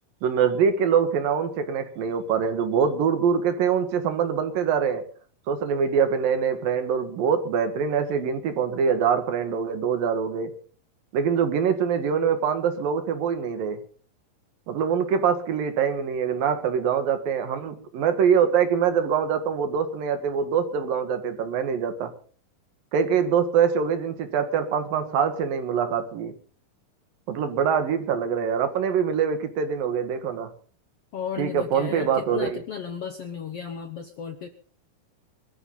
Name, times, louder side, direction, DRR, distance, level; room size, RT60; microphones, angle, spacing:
voice 1, 0.2-5.0 5.5-10.5 11.1-13.8 14.7-22.1 22.9-26.3 27.3-30.5 31.4-32.6, right 7 dB, 70° right, 9 dB, 3.5 m, -24 dB
voice 2, 31.1-34.5, left 7 dB, 65° left, 7 dB, 1.6 m, -34 dB
23.5 x 13.5 x 3.9 m, 0.43 s
omnidirectional pair, 4.2 m